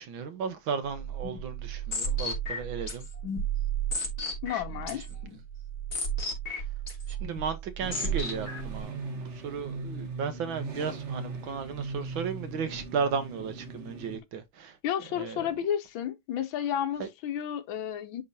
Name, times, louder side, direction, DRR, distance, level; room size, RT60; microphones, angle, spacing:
voice 1, 0.0-3.1 7.1-14.7 15.2-15.5 17.0-17.1, right 6 dB, 80° right, 1.9 m, -34 dB
sound 1, 0.9-8.8, right 3 dB, 50° left, 3.1 m, -33 dB
voice 2, 4.4-5.1 14.8-18.2, left 9 dB, 80° left, 1.7 m, -32 dB
sound 2, 7.8-14.2, right 3 dB, 40° right, 1.4 m, -39 dB
11.0 x 3.8 x 2.7 m
omnidirectional pair, 2.1 m